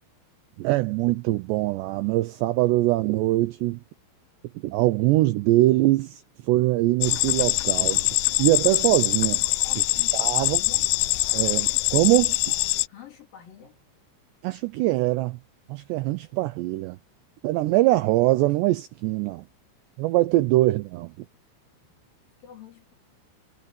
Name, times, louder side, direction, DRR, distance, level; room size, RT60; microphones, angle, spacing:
voice 1, 0.6-3.8 4.6-8.0 8.4-9.4 10.1-10.6 11.3-12.6 14.4-15.4 15.7-17.0 17.4-19.5 20.0-21.1, right 17 dB, 85° right, 2.5 m, -23 dB
sound 1, 7.0-12.9, left 20 dB, 85° left, 2.6 m, -23 dB
voice 2, 9.6-10.1 10.4-10.9 12.9-13.8 22.4-22.9, left 9 dB, 50° left, 4.5 m, -45 dB
omnidirectional pair, 5.8 m